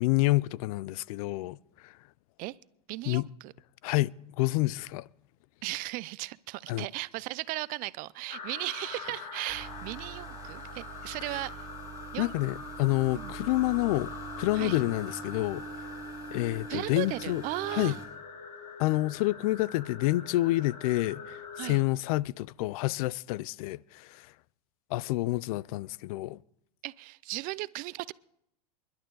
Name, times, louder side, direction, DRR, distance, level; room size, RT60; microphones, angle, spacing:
voice 1, 0.0-1.6 1.8-1.9 3.1-3.3 3.8-5.1 6.7-6.9 11.3-11.4 12.2-14.1 14.4-15.6 16.3-17.4 17.7-18.0 18.8-24.3 24.9-26.4, left 18 dB, 60° left, 0.5 m, -28 dB
voice 2, 2.9-3.5 5.6-11.7 12.1-12.3 13.1-13.3 14.5-14.8 16.7-18.0 21.6-21.8 26.8-28.1, right 20 dB, 45° right, 0.5 m, -36 dB
sound 1, 8.3-21.8, left 6 dB, 85° left, 2.5 m, -44 dB
sound 2, 9.5-18.1, right 5 dB, 15° right, 5.2 m, -44 dB
28.0 x 11.5 x 3.9 m
hypercardioid pair, 115°, 20 cm